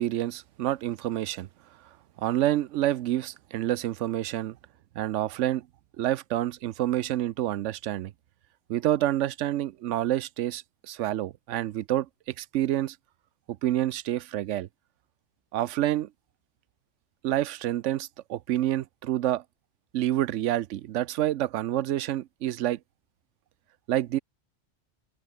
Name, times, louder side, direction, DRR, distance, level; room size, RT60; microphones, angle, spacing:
voice 1, 0.0-1.5 2.2-4.6 5.0-5.7 6.0-8.1 8.7-12.1 12.4-13.0 13.5-14.7 15.5-16.1 17.2-19.4 19.9-22.8 23.9-24.2, right 13 dB, 85° right, 0.9 m, -28 dB
open air
omnidirectional pair, 1.2 m